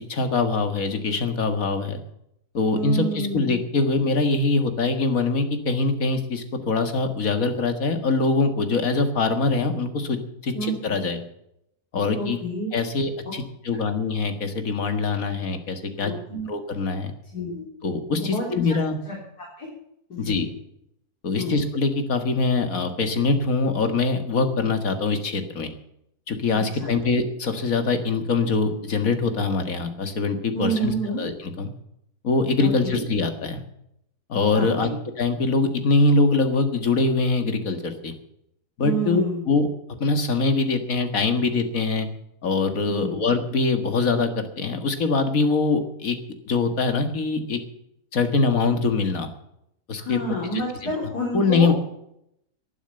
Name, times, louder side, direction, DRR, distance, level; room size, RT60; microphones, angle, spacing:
voice 1, 0.1-2.0 2.5-10.2 10.4-11.2 11.9-12.4 12.7-16.1 16.5-17.1 17.8-19.0 20.2-20.5 21.2-25.7 26.3-31.7 32.2-33.6 34.3-34.9 35.2-38.1 38.8-42.1 42.4-46.2 46.5-47.6 48.1-49.3 49.9-50.2 50.5-50.9 51.3-51.7, left 3 dB, 60° left, 8 dB, 2.1 m, -23 dB
voice 2, 2.7-3.6 10.5-10.8 12.2-12.7 16.0-16.5 17.3-17.6 18.2-18.5 19.1-19.2 19.6-19.7 20.1-20.4 21.4-21.6 26.5-26.9 30.5-31.2 32.6-33.0 34.5-34.9 38.8-39.5 42.9-43.2 50.0-51.7, right 1 dB, 80° left, -3 dB, 4.4 m, -29 dB
11.5 x 11.0 x 8.9 m, 0.76 s
omnidirectional pair, 1.7 m